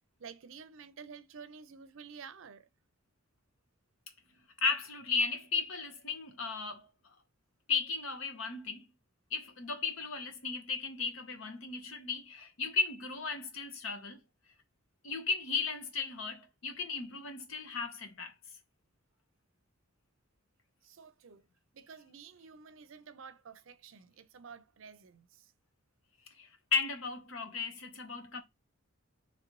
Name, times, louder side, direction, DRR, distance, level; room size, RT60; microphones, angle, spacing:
voice 1, 0.2-2.7 20.8-21.4 21.7-25.5, right 6 dB, 70° right, 0.5 m, -51 dB
voice 2, 4.6-6.9 7.7-8.9 9.3-14.2 15.0-18.3 26.4-28.4, left 5 dB, 80° left, 1.0 m, -35 dB
4.0 x 3.1 x 3.0 m
head